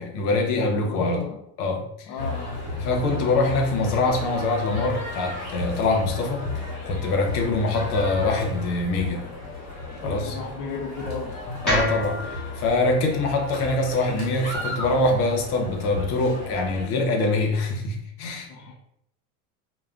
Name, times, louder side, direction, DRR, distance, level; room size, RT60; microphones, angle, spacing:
voice 1, 0.0-1.2 1.6-1.9 2.8-6.5 6.9-9.3 10.0-10.4 11.6-18.5, left 2 dB, 75° left, 3 dB, 0.8 m, -24 dB
voice 2, 0.7-1.4 2.1-2.6 10.0-11.3 18.5-18.7, left 3 dB, 30° left, 1 dB, 0.3 m, -34 dB
sound 1, 2.2-16.8, left 2 dB, 50° left, 1.2 m, -34 dB
sound 2, 11.6-15.8, left 1 dB, ahead, 1.0 m, -32 dB
2.3 x 2.2 x 3.6 m, 0.74 s
supercardioid pair, 135°, 46 cm